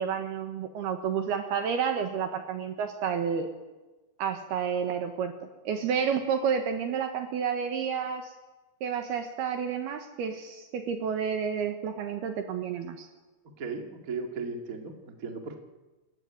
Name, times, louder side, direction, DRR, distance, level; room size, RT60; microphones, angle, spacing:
voice 1, 0.0-3.5 4.2-5.3 5.6-8.3 8.8-13.1, right 7 dB, 70° right, 6 dB, 2.7 m, -30 dB
voice 2, 13.6-15.5, right 4 dB, 40° right, 3 dB, 1.2 m, -36 dB
28.0 x 15.0 x 9.1 m, 1.2 s
omnidirectional pair, 5.9 m